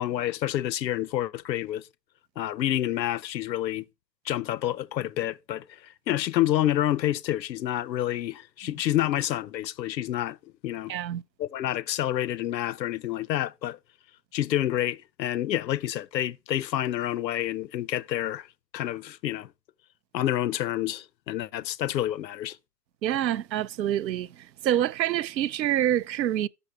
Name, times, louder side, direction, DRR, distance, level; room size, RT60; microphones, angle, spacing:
voice 1, 0.0-1.9 2.4-3.8 4.3-10.4 10.6-11.0 11.4-13.8 14.3-18.5 18.7-19.5 20.1-22.6, left 13 dB, 90° left, 0.6 m, -28 dB
voice 2, 10.9-11.2 23.0-24.3 24.6-26.5, right 11 dB, 90° right, 0.6 m, -26 dB
6.9 x 5.5 x 5.6 m
hypercardioid pair, 175°, 50 cm